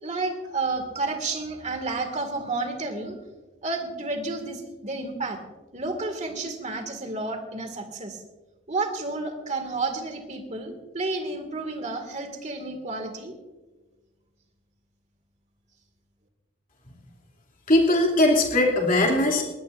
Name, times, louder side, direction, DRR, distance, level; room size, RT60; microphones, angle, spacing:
voice 1, 0.0-3.2 3.6-5.4 5.7-8.2 8.7-13.3, right 3 dB, 35° right, 5 dB, 2.1 m, -31 dB
voice 2, 17.7-19.4, left 1 dB, 40° left, -1 dB, 2.8 m, -20 dB
21.5 x 17.5 x 2.6 m, 1.2 s
head